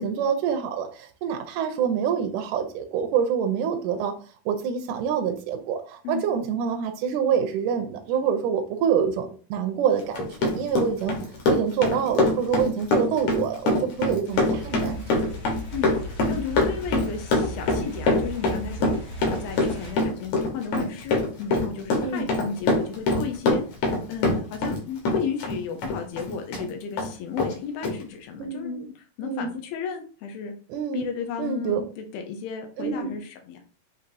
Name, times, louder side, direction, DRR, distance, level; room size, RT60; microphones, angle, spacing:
voice 1, 0.0-4.1 4.5-11.2 11.5-15.2 22.0-22.3 28.4-28.8 29.2-29.5 30.7-31.1 31.4-31.8 32.8-33.2, right 7 dB, 80° right, 5 dB, 1.8 m, -26 dB
Run, 10.0-24.8 25.1-26.7 27.0-27.1 27.4-27.5 27.8-27.9, left 2 dB, 65° left, 2.1 m, -24 dB
sound 1, 14.3-19.9, right 1 dB, 40° left, 0.8 m, -37 dB
voice 2, 16.3-23.6 24.1-28.9 29.2-30.5 30.9-33.6, left 6 dB, 85° left, 4 dB, 2.6 m, -34 dB
7.0 x 2.7 x 2.7 m, 0.38 s
omnidirectional pair, 4.1 m